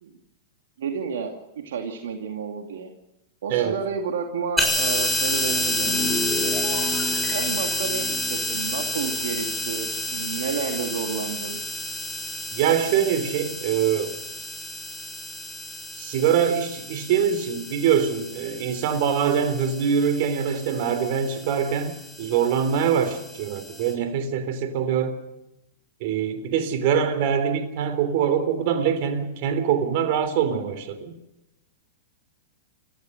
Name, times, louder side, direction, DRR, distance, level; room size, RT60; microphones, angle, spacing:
voice 1, 0.8-2.9 3.4-5.9 6.7-6.9 7.3-11.6, right 6 dB, 75° right, 2.5 m, -31 dB
sound 1, 4.6-23.9, left 1 dB, ahead, 7.2 m, -30 dB
sound 2, 5.3-9.9 10.2-10.5, left 3 dB, 45° left, 5.6 m, -33 dB
voice 2, 12.5-14.2 16.0-25.2 26.0-31.1, right 8 dB, 55° right, 3.5 m, -24 dB
29.0 x 15.0 x 6.6 m
hypercardioid pair, 110°, 0 cm